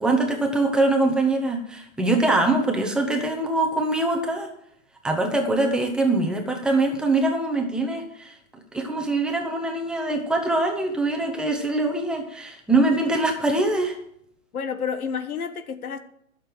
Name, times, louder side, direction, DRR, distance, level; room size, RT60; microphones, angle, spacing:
voice 1, 0.0-4.5 5.0-8.3 8.7-14.0, right 2 dB, ahead, 0.8 m, -23 dB
voice 2, 14.5-16.0, left 6 dB, 90° left, 1.3 m, -29 dB
12.0 x 6.7 x 7.6 m
hypercardioid pair, 155°, 42 cm